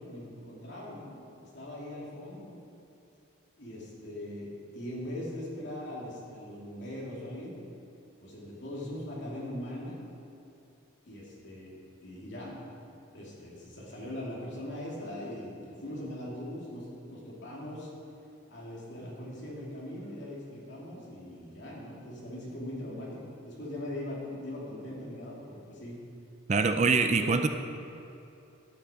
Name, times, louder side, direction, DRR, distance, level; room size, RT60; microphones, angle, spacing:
voice 1, 0.0-2.6 3.6-7.6 8.2-10.1 11.1-17.9 18.5-26.0 27.2-27.5, left 1 dB, 60° left, -5 dB, 2.9 m, -41 dB
voice 2, 26.5-27.5, right 4 dB, 35° right, 7 dB, 0.4 m, -24 dB
12.0 x 8.8 x 5.1 m, 2.8 s
head